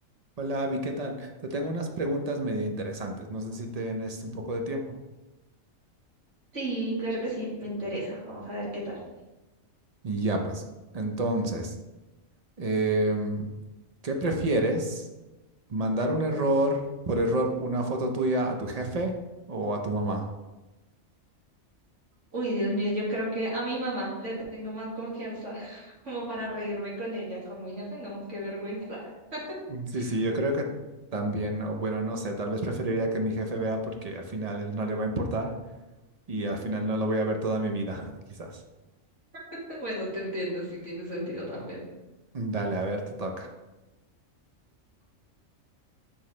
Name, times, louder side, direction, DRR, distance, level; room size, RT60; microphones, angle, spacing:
voice 1, 0.4-4.9 10.0-10.6 10.9-11.8 12.6-13.5 14.0-15.1 15.7-19.2 19.5-20.3 29.7-30.7 31.1-35.5 36.3-38.6 42.3-43.5, right 1 dB, 40° right, 3 dB, 0.6 m, -29 dB
voice 2, 6.5-9.0 22.3-29.0 29.3-29.6 29.9-30.1 39.7-41.8, right 1 dB, 60° right, -6 dB, 2.4 m, -33 dB
6.3 x 5.9 x 3.2 m, 1.1 s
omnidirectional pair, 1.4 m